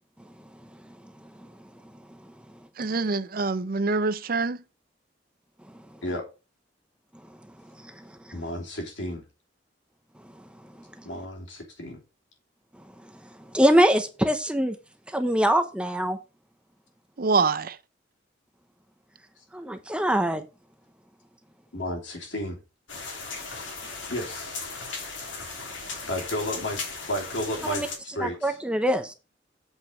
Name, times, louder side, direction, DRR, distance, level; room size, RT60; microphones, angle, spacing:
voice 1, 2.8-4.6 17.2-17.8, right 4 dB, 50° right, 0.6 m, -25 dB
voice 2, 8.3-9.2 11.0-12.0 21.7-22.6 24.1-24.6 26.1-26.8 27.1-28.6, left 1 dB, 70° left, 3.1 m, -32 dB
voice 3, 13.5-14.7 15.1-16.2 19.5-20.4 27.7-27.9 28.2-29.1, equal, 5° right, 0.9 m, -23 dB
sound 1, 22.9-28.0, left 4 dB, 85° left, 2.8 m, -37 dB
8.2 x 5.3 x 5.2 m
head